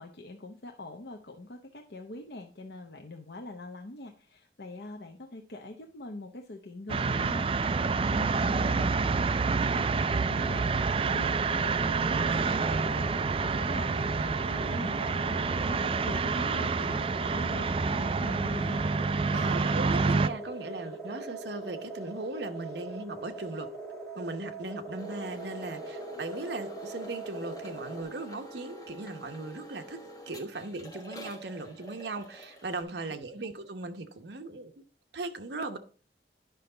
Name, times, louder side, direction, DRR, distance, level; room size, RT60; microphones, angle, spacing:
voice 1, 0.0-18.8, left 2 dB, 70° left, 0.7 m, -43 dB
sound 1, 6.9-20.3, right 4 dB, 30° right, 0.3 m, -28 dB
sound 2, 10.4-28.0, right 2 dB, ahead, 1.8 m, -41 dB
voice 2, 19.3-23.7 24.2-30.0 30.3-34.7 35.1-35.8, right 3 dB, 75° right, 0.9 m, -38 dB
sound 3, 25.0-32.8, equal, 20° left, 1.3 m, -47 dB
10.0 x 5.6 x 3.8 m
head